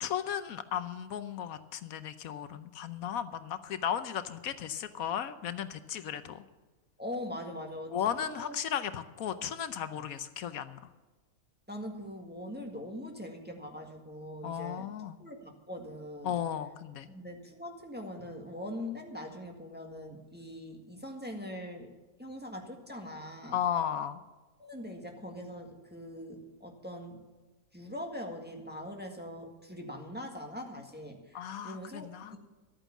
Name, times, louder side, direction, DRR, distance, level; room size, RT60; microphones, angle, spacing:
voice 1, 0.0-6.4 7.9-10.8 14.4-15.2 16.2-17.1 23.5-24.2 31.3-32.4, left 9 dB, 75° left, 12 dB, 1.1 m, -35 dB
voice 2, 7.0-8.5 11.7-14.9 15.2-16.4 17.0-21.9 22.2-23.6 24.6-27.3 27.7-32.4, left 1 dB, 5° right, 1 dB, 1.6 m, -42 dB
13.0 x 9.0 x 7.1 m, 1.3 s
omnidirectional pair, 1.5 m